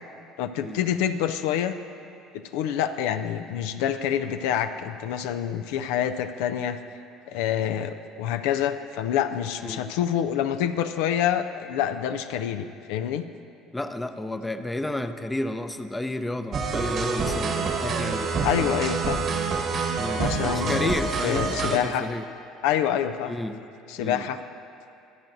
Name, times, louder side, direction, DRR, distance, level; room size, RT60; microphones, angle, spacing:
voice 1, 0.4-1.8 2.3-6.8 7.3-13.3 18.4-19.2 20.2-20.9 21.2-22.1 22.6-23.3 23.9-24.4, left 10 dB, 80° left, 9 dB, 0.4 m, -27 dB
voice 2, 13.7-18.8 20.0-22.3 23.2-23.6 24.0-24.3, left 1 dB, 10° left, 8 dB, 0.6 m, -32 dB
sound 1, 16.5-21.8, right 4 dB, 55° right, 1.4 m, -27 dB
22.5 x 7.6 x 2.6 m, 2.6 s
supercardioid pair, 80°, 0 cm